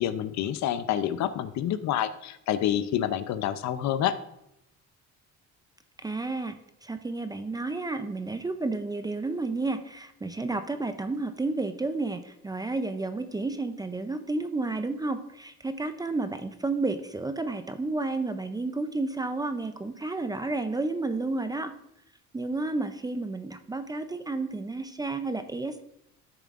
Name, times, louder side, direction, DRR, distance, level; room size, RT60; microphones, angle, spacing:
voice 1, 0.0-4.2, left 11 dB, 60° left, 12 dB, 0.6 m, -28 dB
voice 2, 6.0-21.7 22.3-25.8, right 3 dB, 15° right, 9 dB, 0.5 m, -31 dB
12.5 x 6.9 x 2.5 m, 0.81 s
cardioid pair, 125°, 31 cm